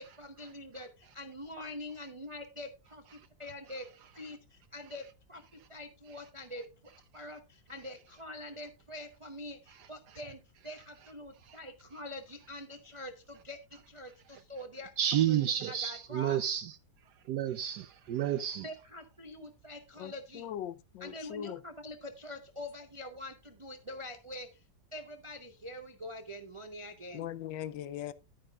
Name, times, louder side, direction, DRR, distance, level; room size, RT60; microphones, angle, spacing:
voice 1, 0.0-3.9 4.1-5.4 5.7-6.6 7.1-14.9 15.3-16.4 18.6-20.5 21.0-24.6 24.9-27.3, left 1 dB, 45° right, 0.4 m, -45 dB
voice 2, 15.0-16.7 17.3-18.7, right 10 dB, 70° right, 1.1 m, -30 dB
voice 3, 20.0-21.6 27.1-28.1, left 11 dB, 90° left, 1.3 m, -40 dB
10.5 x 10.0 x 2.3 m
omnidirectional pair, 2.0 m